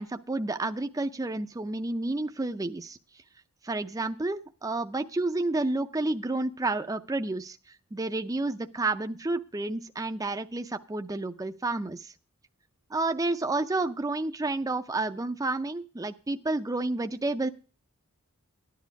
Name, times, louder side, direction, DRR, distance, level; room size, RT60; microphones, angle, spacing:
voice 1, 0.0-3.0 3.6-7.6 7.9-12.1 12.9-17.5, right 2 dB, 15° right, 7 dB, 0.5 m, -30 dB
13.5 x 10.5 x 4.6 m, 0.37 s
head